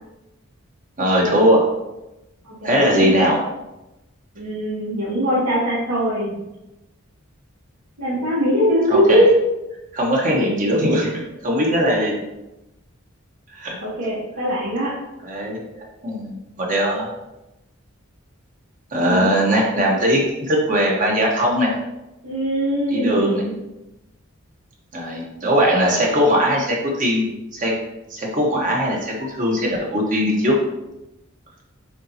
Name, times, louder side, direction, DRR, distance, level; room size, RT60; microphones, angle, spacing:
voice 1, 1.0-1.7 2.6-3.5 8.9-9.2 9.9-11.1 11.4-12.2 13.5-13.8 15.2-17.1 18.9-21.7 22.9-23.4 24.9-27.7 28.1-30.6, equal, 35° right, -2 dB, 1.3 m, -20 dB
voice 2, 2.4-3.1 4.4-6.3 8.0-9.3 13.8-15.0 19.1-19.3 22.2-23.5, equal, 85° right, -11 dB, 2.0 m, -21 dB
8.6 x 3.9 x 2.9 m, 0.96 s
head